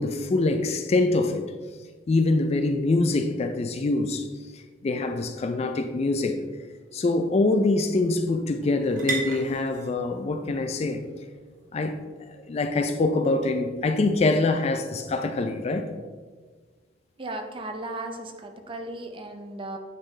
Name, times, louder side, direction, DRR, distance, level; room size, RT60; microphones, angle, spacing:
voice 1, 0.0-1.4 2.1-4.3 4.5-6.4 6.9-11.0 11.7-15.9, left 2 dB, 35° left, 0.4 m, -24 dB
sound 1, 6.0-13.3, right 3 dB, 45° right, 1.2 m, -40 dB
voice 2, 17.2-19.8, right 2 dB, 30° right, 0.6 m, -36 dB
8.8 x 4.0 x 3.2 m
head